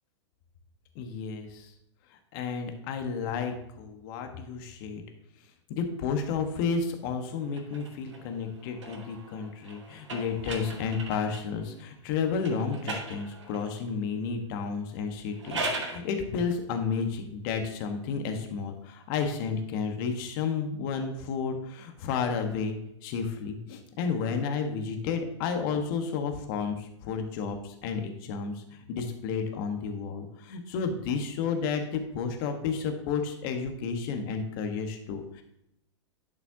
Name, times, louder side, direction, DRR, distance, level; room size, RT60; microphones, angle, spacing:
voice 1, 0.9-1.7 2.3-5.0 5.7-35.4, left 5 dB, 50° left, 5 dB, 1.3 m, -32 dB
sound 1, 7.5-11.6 12.4-13.8 15.2-16.0, right 2 dB, 80° right, 2.4 m, -38 dB
11.5 x 5.9 x 2.8 m, 0.80 s
hypercardioid pair, 105°, 15 cm